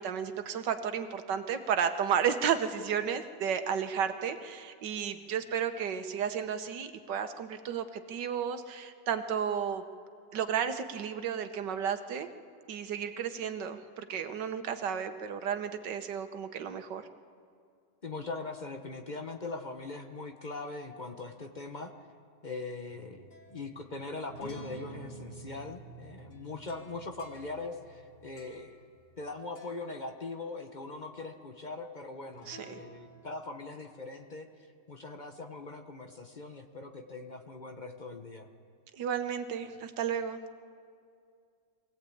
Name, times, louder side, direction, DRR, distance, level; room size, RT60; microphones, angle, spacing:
voice 1, 0.0-9.8 10.3-12.3 12.7-17.0 32.5-32.7 39.0-40.4, right 8 dB, 85° right, 8 dB, 1.7 m, -33 dB
voice 2, 18.0-21.9 22.4-28.8 29.2-34.5 34.9-38.5, left 3 dB, 30° left, 5 dB, 1.0 m, -41 dB
sound 1, 22.9-29.2 29.6-29.9 32.3-33.3, right 1 dB, 80° left, 3.1 m, -49 dB
23.0 x 17.0 x 8.5 m, 2.3 s
omnidirectional pair, 1.8 m